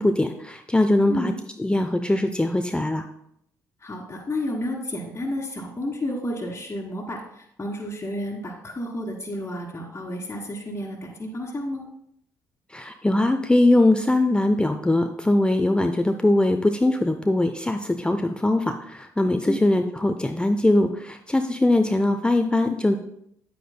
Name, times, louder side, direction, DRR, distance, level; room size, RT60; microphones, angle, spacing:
voice 1, 0.0-1.3 1.6-3.0 12.7-23.0, left 1 dB, 10° left, 6 dB, 0.6 m, -21 dB
voice 2, 3.8-11.8 19.5-19.6, left 1 dB, 25° left, -3 dB, 1.6 m, -31 dB
9.3 x 9.1 x 2.2 m, 0.75 s
hypercardioid pair, 45°, 10 cm